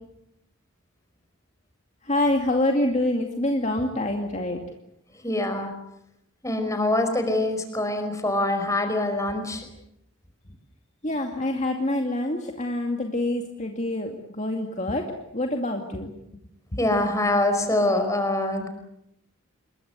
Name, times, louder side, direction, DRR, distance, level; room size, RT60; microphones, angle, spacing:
voice 1, 2.0-4.6 11.0-16.1, left 1 dB, 35° left, 3 dB, 2.4 m, -26 dB
voice 2, 5.2-5.7 6.4-9.7 16.8-18.7, left 1 dB, 15° left, 6 dB, 5.2 m, -24 dB
27.5 x 23.0 x 8.1 m, 0.80 s
head